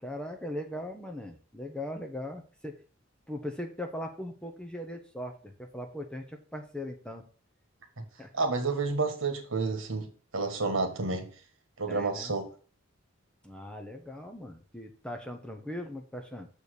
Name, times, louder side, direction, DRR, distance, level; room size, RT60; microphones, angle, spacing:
voice 1, 0.0-2.8 3.3-7.2 8.2-8.3 11.9-12.3 13.4-16.5, left 1 dB, 5° left, 4 dB, 0.8 m, -39 dB
voice 2, 8.3-11.3 11.8-12.5, right 3 dB, 75° right, 5 dB, 1.6 m, -30 dB
6.9 x 4.5 x 6.7 m, 0.40 s
head